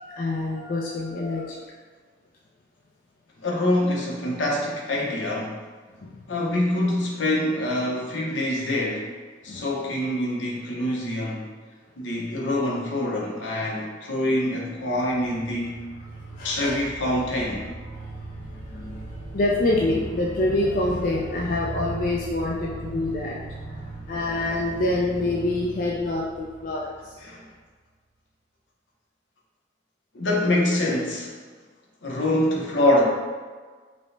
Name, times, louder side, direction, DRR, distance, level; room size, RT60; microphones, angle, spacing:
voice 1, 0.0-1.6 6.0-6.2 9.5-9.6 16.1-16.8 17.9-27.2, left 2 dB, 45° left, -4 dB, 0.4 m, -27 dB
voice 2, 3.4-5.5 6.3-9.1 9.4-11.5 12.0-15.8 16.4-17.7 27.2-27.5 30.1-31.3 32.0-33.0, left 1 dB, 75° left, -2 dB, 0.8 m, -25 dB
sound 1, 14.9-27.4, right 2 dB, 75° right, 0.8 m, -39 dB
5.1 x 2.1 x 3.2 m, 1.5 s
head